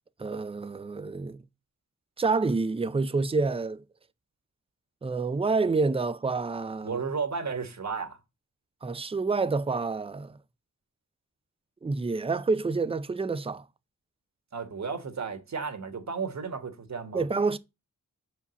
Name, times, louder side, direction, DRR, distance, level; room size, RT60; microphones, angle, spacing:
voice 1, 0.2-1.4 2.2-3.8 5.0-7.0 8.8-10.4 11.8-13.6 17.1-17.6, right 4 dB, 20° right, 0.5 m, -28 dB
voice 2, 6.8-8.2 14.5-17.2, right 5 dB, 60° right, 1.6 m, -33 dB
7.1 x 4.8 x 6.9 m
wide cardioid pair, 115°, 32 cm